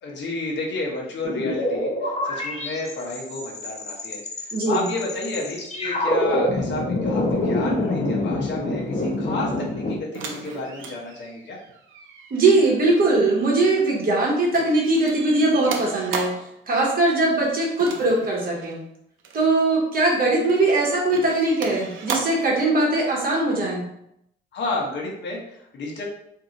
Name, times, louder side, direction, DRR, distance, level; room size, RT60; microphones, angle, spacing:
voice 1, 0.0-11.6 24.5-26.0, left 2 dB, 65° left, -2 dB, 0.9 m, -31 dB
sound 1, 1.2-10.0, left 1 dB, 35° left, 0.7 m, -26 dB
voice 2, 4.5-4.8 12.3-16.3 16.7-18.8 19.3-23.8, right 2 dB, 50° right, -2 dB, 1.0 m, -20 dB
sound 2, 10.1-14.2 14.5-16.5 17.8-18.8 19.2-19.5 20.1-20.7 21.1-22.5 23.7-23.8, right 5 dB, 80° right, 0.5 m, -36 dB
2.7 x 2.4 x 3.9 m, 0.77 s
cardioid pair, 90°, 20 cm